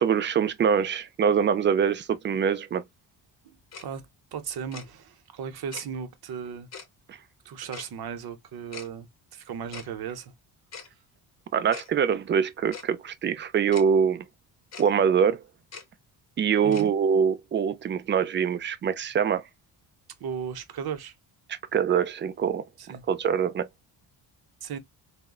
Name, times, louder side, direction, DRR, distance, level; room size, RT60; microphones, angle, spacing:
voice 1, 0.0-2.8 7.1-7.2 11.5-14.3 14.8-15.4 16.4-19.4 21.5-23.7, right 7 dB, 30° right, 0.4 m, -24 dB
voice 2, 3.4-6.7 7.4-10.3 16.6-16.9 20.2-21.1 22.8-23.1 24.6-24.8, right 7 dB, 55° right, 0.7 m, -36 dB
Tick-tock, 3.7-3.8 4.7-4.9 5.7-5.8 6.7-6.9 7.7-7.9 8.7-8.9 9.7-9.9 10.7-10.9 11.7-11.9 12.7-12.9 13.7-13.8 14.7-14.9 15.7-15.8 16.7-16.9, left 5 dB, 35° left, 0.8 m, -41 dB
3.6 x 2.1 x 2.2 m
cardioid pair, 110°, 43 cm